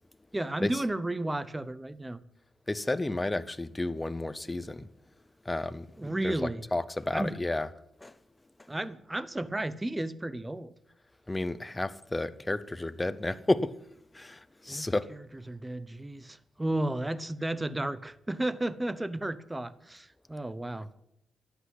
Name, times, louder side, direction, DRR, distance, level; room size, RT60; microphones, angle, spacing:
voice 1, 0.3-2.2 6.0-6.6 7.1-7.3 8.7-10.7 14.7-20.9, right 1 dB, 15° right, 0.8 m, -33 dB
voice 2, 2.7-4.9 5.5-7.7 8.0-8.1 11.3-13.7 14.1-15.1, left 2 dB, 15° left, 0.7 m, -31 dB
12.0 x 8.4 x 9.6 m
cardioid pair, 90°, 0 cm